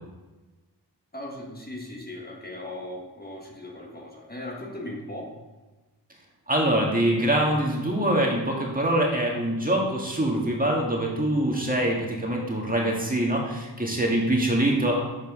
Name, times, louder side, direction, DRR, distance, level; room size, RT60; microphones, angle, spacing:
voice 1, 1.1-5.3, left 1 dB, 20° left, -1 dB, 1.6 m, -38 dB
voice 2, 6.5-15.0, right 1 dB, 20° right, -1 dB, 1.8 m, -24 dB
7.1 x 5.3 x 4.9 m, 1.2 s
cardioid pair, 50°, 41 cm